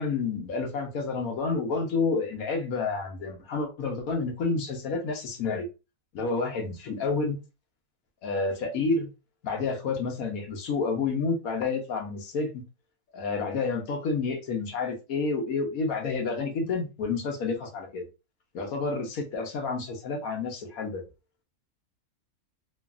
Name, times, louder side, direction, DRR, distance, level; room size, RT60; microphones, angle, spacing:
voice 1, 0.0-5.7 6.1-7.4 8.2-9.1 9.4-12.6 13.1-18.1 18.5-21.0, left 4 dB, 80° left, 1.3 m, -29 dB
3.1 x 2.4 x 2.4 m
omnidirectional pair, 1.5 m